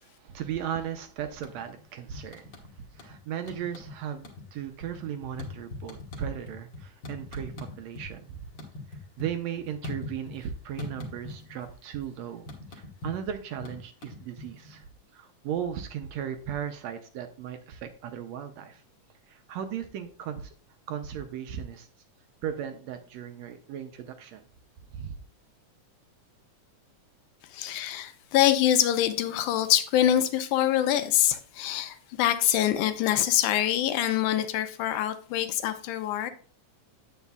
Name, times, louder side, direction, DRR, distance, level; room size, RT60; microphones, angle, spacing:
voice 1, 0.0-2.5 2.9-7.5 7.8-8.4 8.9-14.8 15.1-18.8 19.3-20.5 20.9-21.9 22.4-24.5 24.9-25.2, right 9 dB, 75° right, 1.7 m, -36 dB
sound 1, 1.3-1.8 2.1-3.2 3.4-8.1 8.4-10.5 10.8-11.6 11.9-14.8, left 2 dB, 45° left, 1.8 m, -41 dB
voice 2, 27.5-36.3, left 12 dB, 85° left, 2.1 m, -25 dB
9.5 x 8.1 x 2.3 m
omnidirectional pair, 3.6 m